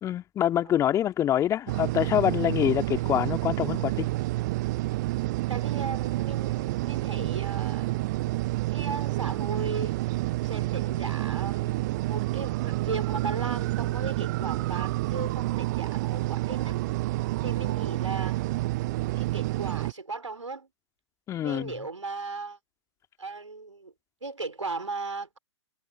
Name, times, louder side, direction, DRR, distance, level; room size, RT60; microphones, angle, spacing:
voice 1, 0.0-4.1 21.3-21.7, left 11 dB, 20° left, 2.1 m, -25 dB
sound 1, 1.7-19.9, right 19 dB, 35° right, 0.7 m, -29 dB
voice 2, 5.5-7.9 8.7-10.1 10.4-16.8 17.4-18.4 19.2-20.7 21.4-22.6 23.2-23.9 24.2-25.4, right 3 dB, 80° right, 3.7 m, -36 dB
figure-of-eight pair, 115°, 16 cm